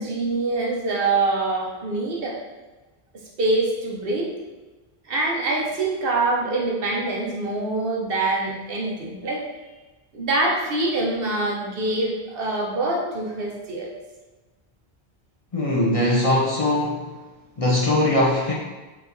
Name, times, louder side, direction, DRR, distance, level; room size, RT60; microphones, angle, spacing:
voice 1, 0.0-2.4 3.4-4.3 5.1-9.4 10.1-13.9, right 2 dB, 65° right, -2 dB, 1.0 m, -24 dB
voice 2, 15.5-17.1 17.6-18.5, left 1 dB, 40° left, -4 dB, 0.6 m, -21 dB
4.7 x 3.3 x 2.6 m, 1.2 s
omnidirectional pair, 1.1 m